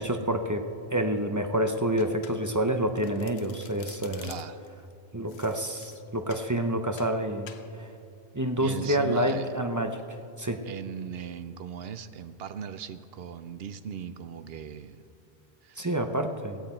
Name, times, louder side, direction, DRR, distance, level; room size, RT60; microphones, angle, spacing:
voice 1, 0.0-4.3 5.1-7.9 8.3-10.0 10.4-10.7 15.8-16.6, right 1 dB, 20° right, 5 dB, 0.6 m, -28 dB
Domestic sounds home sounds, 2.0-2.7 3.0-4.7 5.3-6.5 7.0-7.2 7.5-7.7, left 7 dB, 75° left, 1.1 m, -49 dB
voice 2, 4.2-4.6 8.6-9.5 10.6-15.0 15.6-15.9, right 7 dB, 70° right, 12 dB, 0.9 m, -38 dB
16.5 x 15.5 x 4.4 m, 2.5 s
omnidirectional pair, 1.1 m